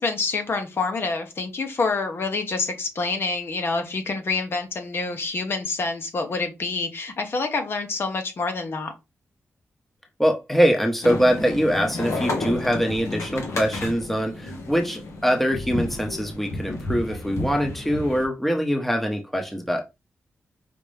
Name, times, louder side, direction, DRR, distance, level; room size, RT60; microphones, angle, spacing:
voice 1, 0.0-8.9, left 3 dB, 55° left, 1.0 m, -27 dB
voice 2, 10.2-19.8, equal, 5° left, 0.9 m, -23 dB
sound 1, 11.0-18.3, left 2 dB, 85° left, 1.2 m, -31 dB
5.2 x 2.9 x 3.3 m
wide cardioid pair, 100°, 5 cm